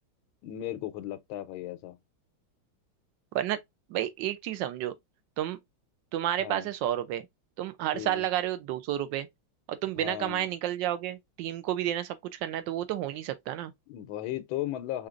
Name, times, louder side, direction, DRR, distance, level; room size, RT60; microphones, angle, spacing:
voice 1, 0.4-2.0 6.4-6.7 7.9-8.3 10.0-10.5 13.9-15.1, left 13 dB, 85° left, 1.4 m, -36 dB
voice 2, 3.9-4.9 5.4-5.6 6.1-7.3 7.6-9.3 9.7-13.7, right 12 dB, 75° right, 1.2 m, -31 dB
4.9 x 2.9 x 2.4 m
omnidirectional pair, 2.2 m